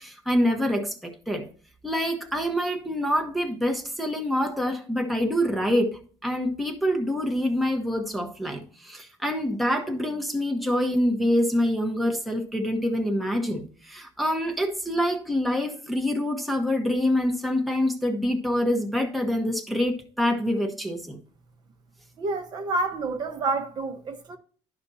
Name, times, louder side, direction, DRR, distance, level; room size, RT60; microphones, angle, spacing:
voice 1, 0.0-1.5 1.8-21.2, equal, ahead, 0.9 m, -26 dB
voice 2, 22.2-24.4, right 3 dB, 40° right, 1.0 m, -29 dB
11.0 x 5.9 x 2.7 m
cardioid pair, 150°, 11 cm